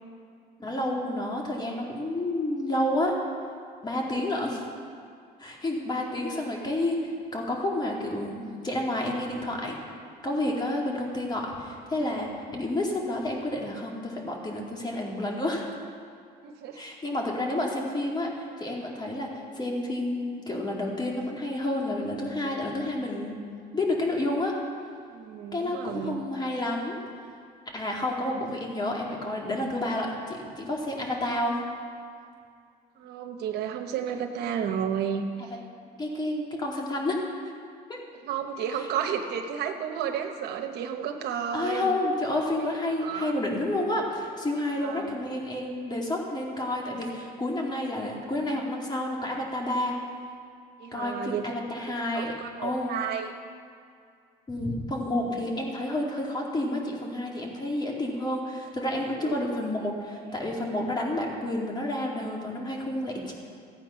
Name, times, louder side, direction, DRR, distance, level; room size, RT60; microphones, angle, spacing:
voice 1, 0.6-3.2 3.8-4.6 5.4-9.7 10.2-15.6 16.7-23.3 23.7-24.5 25.5-27.0 27.7-31.6 36.0-37.3 37.9-38.0 41.5-50.0 50.9-52.3 52.6-52.9 54.5-63.3, left 1 dB, 25° left, -1 dB, 2.5 m, -30 dB
voice 2, 16.4-16.8 25.1-26.2 33.0-35.5 38.2-42.0 42.6-43.3 44.8-45.2 50.8-51.5 52.1-53.3 59.2-59.3, right 8 dB, 80° right, 4 dB, 1.0 m, -32 dB
15.0 x 8.8 x 5.8 m, 2.3 s
cardioid pair, 110°, 17 cm